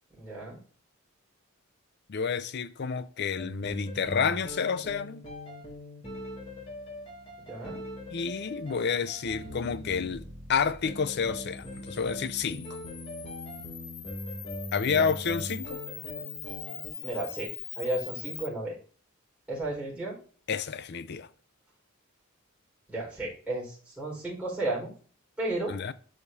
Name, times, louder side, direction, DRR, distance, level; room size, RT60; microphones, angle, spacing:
voice 1, 0.2-0.6 7.5-7.8 14.9-15.1 17.0-18.8 19.5-20.2 22.9-24.9 25.4-25.8, right 2 dB, 5° right, 4.4 m, -33 dB
voice 2, 2.1-5.2 8.1-12.8 14.7-15.8 20.5-21.3 25.7-25.9, left 6 dB, 50° left, 0.5 m, -30 dB
sound 1, 3.4-16.9, left 1 dB, 25° left, 2.8 m, -41 dB
Camera, 11.5-18.5, left 9 dB, 90° left, 1.2 m, -42 dB
12.0 x 5.1 x 2.7 m
head